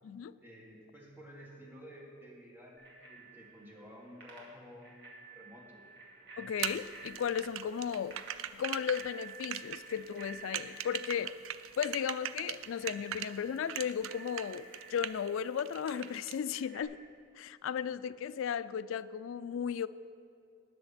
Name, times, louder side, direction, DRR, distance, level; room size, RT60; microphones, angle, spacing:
voice 1, 0.4-5.8, equal, 10° right, -2 dB, 1.6 m, -52 dB
Bicycle bell, 2.8-16.8, right 4 dB, 60° right, 2.3 m, -52 dB
voice 2, 6.4-8.2 8.5-11.3 11.8-17.0 17.4-19.9, left 8 dB, 70° left, 15 dB, 0.3 m, -35 dB
sound 1, 6.6-13.3 13.7-15.3 15.6-16.3, right 10 dB, 75° right, 0.4 m, -39 dB
19.0 x 6.6 x 4.2 m, 2.7 s
head